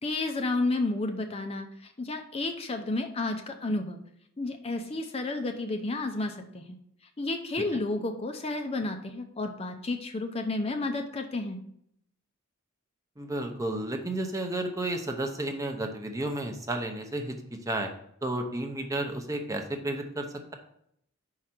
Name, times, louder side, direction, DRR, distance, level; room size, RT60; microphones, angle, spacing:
voice 1, 0.0-4.0 4.4-6.8 7.2-11.6, left 2 dB, 30° left, 5 dB, 0.6 m, -31 dB
voice 2, 13.2-17.9 18.2-20.3, right 1 dB, 15° right, 3 dB, 0.7 m, -32 dB
5.4 x 4.9 x 5.9 m, 0.71 s
head